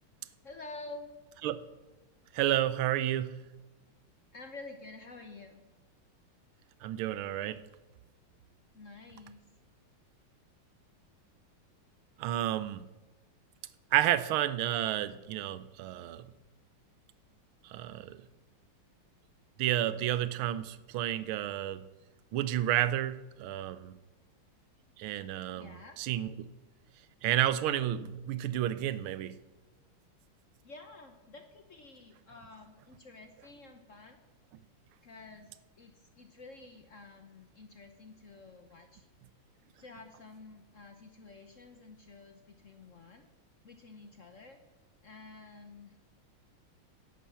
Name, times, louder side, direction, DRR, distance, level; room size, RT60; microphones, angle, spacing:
voice 1, 0.4-1.1 4.3-5.6 8.7-9.4 25.5-26.0 30.6-34.2 35.0-35.5 35.8-39.0 39.8-43.3 43.6-44.6 45.0-46.0, left 3 dB, 50° left, 1.0 m, -50 dB
voice 2, 2.3-3.4 6.8-7.6 12.2-12.9 13.9-16.3 17.7-18.2 19.6-21.9 22.3-23.9 25.0-26.5 27.2-29.4, right 12 dB, 80° right, 1.5 m, -31 dB
11.0 x 8.9 x 7.3 m
omnidirectional pair, 2.3 m